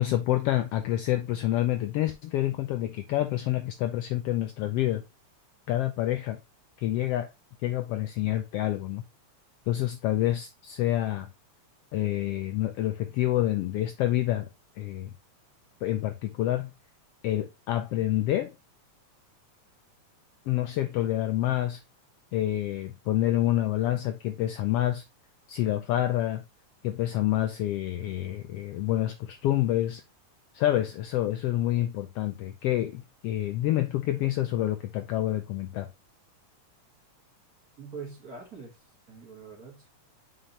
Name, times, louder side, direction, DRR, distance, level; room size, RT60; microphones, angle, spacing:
voice 1, 0.0-5.0 5.7-6.4 6.8-7.3 7.6-9.0 9.7-11.3 11.9-14.5 14.8-15.1 15.8-16.7 17.2-18.5 20.5-21.8 22.3-25.0 25.5-26.4 26.8-30.0 30.5-35.9, left 13 dB, 90° left, 1.3 m, -27 dB
voice 2, 37.8-39.9, right 5 dB, 35° right, 1.9 m, -44 dB
5.8 x 5.0 x 3.3 m
omnidirectional pair, 3.4 m